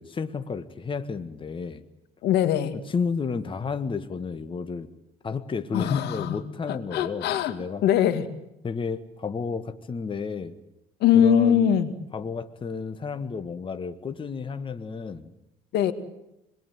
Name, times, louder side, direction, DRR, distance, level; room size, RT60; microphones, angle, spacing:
voice 1, 0.0-1.8 2.9-4.9 5.2-7.8 8.6-10.6 11.1-11.7 12.1-15.3, left 5 dB, 30° left, 9 dB, 1.7 m, -31 dB
voice 2, 2.2-2.7 5.7-6.4 6.7-7.5 7.8-8.3 11.0-11.9 15.7-15.9, left 9 dB, 80° left, 10 dB, 2.4 m, -21 dB
26.5 x 21.5 x 9.4 m, 0.87 s
cardioid pair, 110°, 17 cm